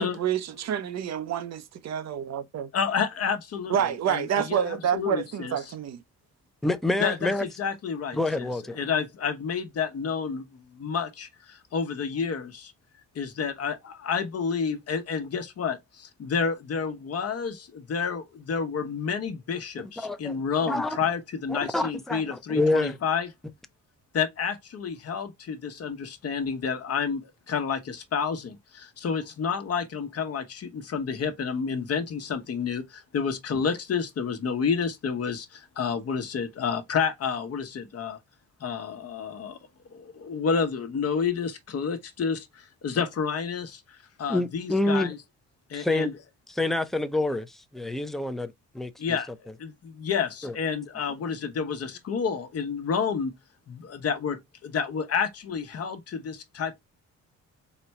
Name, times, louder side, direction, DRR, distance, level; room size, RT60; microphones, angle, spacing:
voice 1, 0.0-2.7 3.7-6.0, right 8 dB, 60° right, 0.6 m, -28 dB
voice 2, 2.7-3.8 4.1-5.5 7.0-8.5 8.8-12.7 13.1-23.3 24.1-38.2 38.6-39.6 39.9-45.2 45.7-46.1 49.0-49.3 49.6-53.3 53.7-56.8, left 6 dB, 55° left, 1.0 m, -30 dB
voice 3, 6.6-7.4 8.1-8.8 19.8-20.4 20.7-21.0 21.5-23.0 44.3-45.1 45.7-46.1 46.5-49.2 50.4-50.5, left 2 dB, ahead, 0.6 m, -27 dB
4.2 x 2.2 x 4.1 m
cardioid pair, 90°, 30 cm